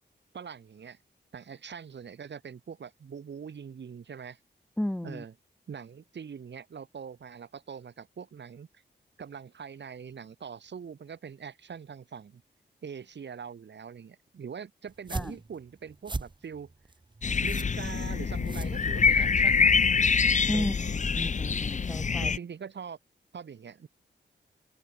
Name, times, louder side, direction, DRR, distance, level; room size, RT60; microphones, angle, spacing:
voice 1, 0.3-1.0 1.3-4.4 5.0-5.3 5.7-8.7 9.2-12.4 12.8-16.7 17.4-19.7 20.5-21.0 22.2-23.0 23.3-23.9, right 7 dB, 70° right, 4.0 m, -43 dB
voice 2, 4.8-5.2 15.1-15.3 20.5-20.7 21.1-22.3, left 1 dB, 5° left, 0.6 m, -32 dB
sound 1, 14.9-19.4, right 3 dB, 25° right, 1.8 m, -40 dB
sound 2, 17.2-22.4, left 5 dB, 40° left, 0.9 m, -25 dB
open air
wide cardioid pair, 130°, 19 cm